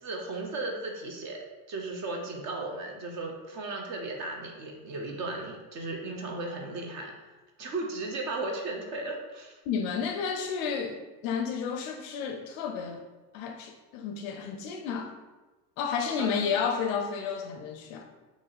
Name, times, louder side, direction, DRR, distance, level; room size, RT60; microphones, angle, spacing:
voice 1, 0.0-1.4 1.7-7.1 7.6-9.6 16.2-16.3, right 2 dB, 35° right, 1 dB, 0.6 m, -35 dB
voice 2, 9.7-13.0 13.3-15.1 15.8-18.1, left 6 dB, 50° left, 4 dB, 0.4 m, -31 dB
3.0 x 2.6 x 3.8 m, 1.2 s
supercardioid pair, 120°, 49 cm